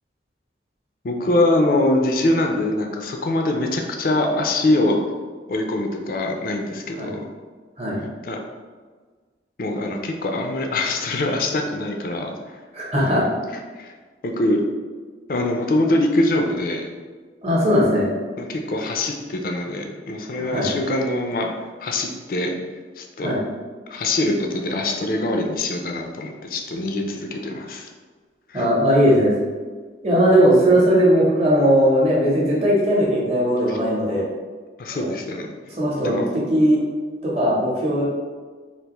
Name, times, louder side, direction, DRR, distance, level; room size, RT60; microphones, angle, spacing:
voice 1, 1.0-5.0 5.5-7.2 8.2-8.4 9.6-12.3 13.0-13.3 13.8-13.9 14.2-14.6 15.3-16.9 18.4-21.5 21.8-22.5 23.0-23.3 23.9-27.9 28.5-28.7 33.7-33.8 34.8-35.5 36.0-36.3, left 1 dB, 50° left, 2 dB, 0.4 m, -23 dB
voice 2, 12.7-13.3 17.4-18.1 20.3-20.7 23.2-23.4 28.5-29.3 30.0-34.3 34.9-35.1 35.7-36.2 36.5-36.8 37.2-38.0, equal, 35° right, -5 dB, 0.8 m, -18 dB
3.4 x 2.5 x 2.9 m, 1.4 s
head